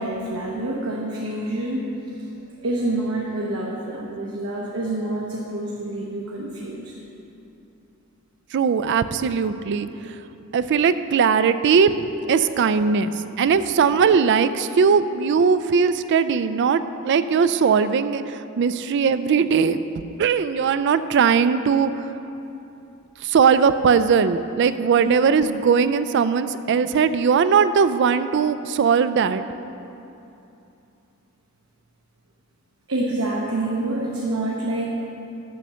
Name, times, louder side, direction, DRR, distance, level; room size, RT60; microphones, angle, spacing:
voice 1, 0.0-1.8 2.2-2.3 2.6-6.9 12.3-12.5 25.0-25.1 32.9-34.9, right 1 dB, 85° right, -3 dB, 1.0 m, -27 dB
voice 2, 8.5-10.2 10.5-12.0 12.3-22.1 23.2-29.4, right 6 dB, 55° right, 13 dB, 0.3 m, -19 dB
7.7 x 6.8 x 6.2 m, 2.8 s
head